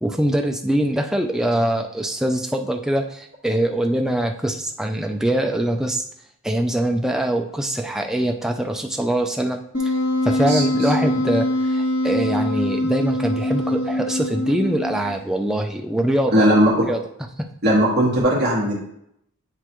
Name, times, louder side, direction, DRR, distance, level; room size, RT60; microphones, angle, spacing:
voice 1, 0.0-6.0 6.4-9.9 10.2-16.5 16.9-17.0, right 1 dB, ahead, 3 dB, 0.4 m, -23 dB
Wind instrument woodwind instrument, 9.7-15.2, left 1 dB, 75° left, 2.5 m, -23 dB
voice 2, 10.5-10.9 16.3-16.9 17.6-18.8, equal, 45° right, -5 dB, 1.6 m, -18 dB
9.8 x 3.4 x 3.0 m, 0.75 s
head